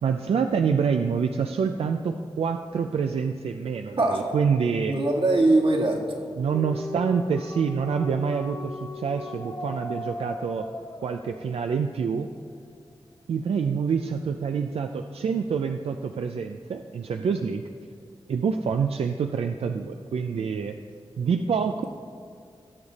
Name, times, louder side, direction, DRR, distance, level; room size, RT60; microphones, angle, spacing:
voice 1, 0.0-5.0 6.4-10.7 11.0-12.3 13.3-17.6 18.3-20.8 21.2-21.8, right 6 dB, 90° right, 6 dB, 0.4 m, -26 dB
voice 2, 4.9-6.2, right 2 dB, 60° right, -1 dB, 2.0 m, -21 dB
sound 1, 6.5-11.8, left 2 dB, 35° left, 0.9 m, -37 dB
17.5 x 7.2 x 4.1 m, 2.3 s
wide cardioid pair, 65°, 10 cm